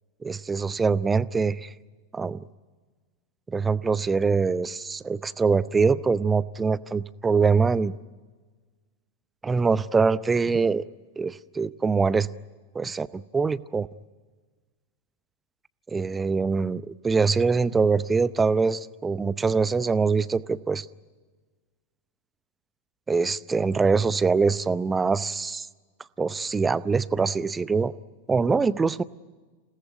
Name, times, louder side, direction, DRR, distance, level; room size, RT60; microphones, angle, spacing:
voice 1, 0.2-1.7 2.1-2.4 3.5-7.9 9.4-10.8 11.2-12.3 12.7-13.9 15.9-20.9 23.1-25.7 26.2-27.9 28.3-29.0, right 4 dB, 15° right, 19 dB, 0.7 m, -23 dB
28.5 x 18.5 x 9.2 m, 1.4 s
figure-of-eight pair, 90°, 0 cm